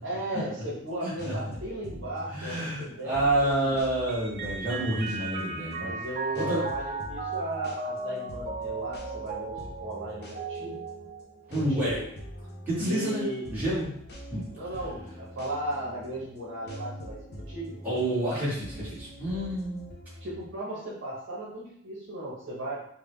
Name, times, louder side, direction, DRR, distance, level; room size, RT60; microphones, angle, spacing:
voice 1, 0.0-3.8 5.8-10.8 11.5-12.0 12.8-13.4 14.5-17.8 20.2-22.8, right 1 dB, 60° right, -5 dB, 1.0 m, -36 dB
sound 1, 0.8-20.5, equal, 50° left, 0.7 m, -44 dB
voice 2, 1.0-1.3 2.3-6.0 6.3-6.6 11.5-12.0 12.7-13.9 14.3-14.4 17.8-19.9, right 1 dB, 10° right, -10 dB, 1.5 m, -29 dB
Mallet percussion, 4.1-11.8, right 3 dB, 40° right, 0.4 m, -36 dB
3.6 x 2.2 x 3.2 m, 0.69 s
head